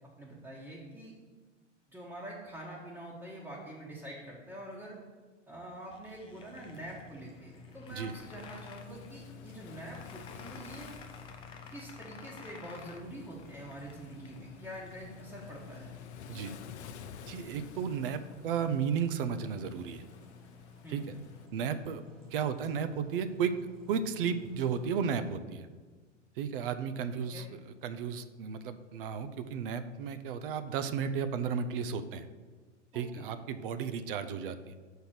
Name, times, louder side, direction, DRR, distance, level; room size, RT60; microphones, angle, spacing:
voice 1, 0.2-1.1 1.9-5.0 5.5-10.9 11.7-16.0 16.2-16.4 20.8-21.0 27.3-27.5 32.9-33.3, right 1 dB, 5° right, -6 dB, 1.3 m, -45 dB
sound 1, 5.9-14.4, left 5 dB, 15° left, 0.4 m, -53 dB
sound 2, 6.3-25.4, left 7 dB, 80° right, 1.6 m, -53 dB
Waves surf, 7.9-21.5, left 7 dB, 65° left, 0.6 m, -53 dB
voice 2, 17.3-20.0 20.9-21.2 21.5-22.0 22.3-23.5 23.9-25.7 26.4-32.3 32.9-34.7, right 7 dB, 45° right, 11 dB, 0.6 m, -34 dB
6.4 x 4.6 x 6.5 m, 1.4 s
figure-of-eight pair, 95°, 37 cm